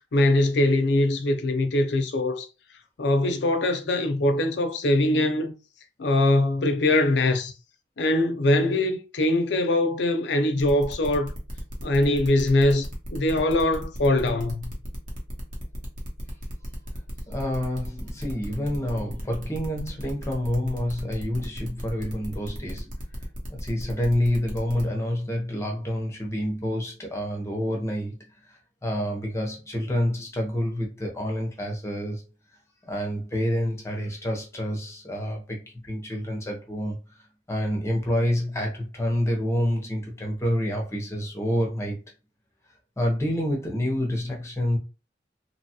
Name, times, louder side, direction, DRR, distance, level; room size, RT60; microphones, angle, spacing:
voice 1, 0.1-2.5 3.0-5.5 6.0-7.5 8.0-11.3 11.8-14.8, left 1 dB, 65° left, 0.5 m, -22 dB
sound 1, 10.6-24.8, equal, 45° right, 0.9 m, -38 dB
voice 2, 17.3-22.9 23.5-28.2 28.4-32.2 32.8-37.0 37.5-42.0 43.0-44.8, equal, 15° left, 0.6 m, -28 dB
2.9 x 2.2 x 2.8 m
head